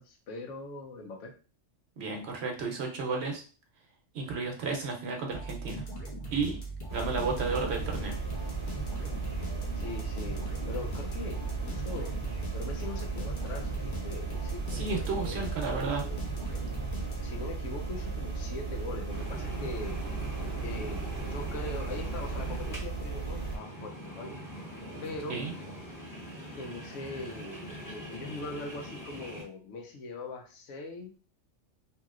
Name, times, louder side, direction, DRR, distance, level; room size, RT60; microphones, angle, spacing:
voice 1, 0.0-1.3 9.8-12.1 12.5-16.2 17.2-20.0 20.6-24.4 25.0-25.4 26.6-31.1, left 3 dB, 80° left, 3 dB, 1.0 m, -41 dB
voice 2, 2.0-3.4 4.1-5.8 6.3-6.6 6.9-8.2 14.7-16.0 25.3-25.5, right 4 dB, 65° right, 1 dB, 0.9 m, -32 dB
sound 1, 5.3-17.5, right 2 dB, 50° left, 0.8 m, -40 dB
sound 2, 6.9-23.6, right 4 dB, 30° right, 0.6 m, -36 dB
sound 3, 19.1-29.4, equal, 20° left, 0.8 m, -43 dB
2.9 x 2.8 x 2.4 m, 0.37 s
omnidirectional pair, 1.3 m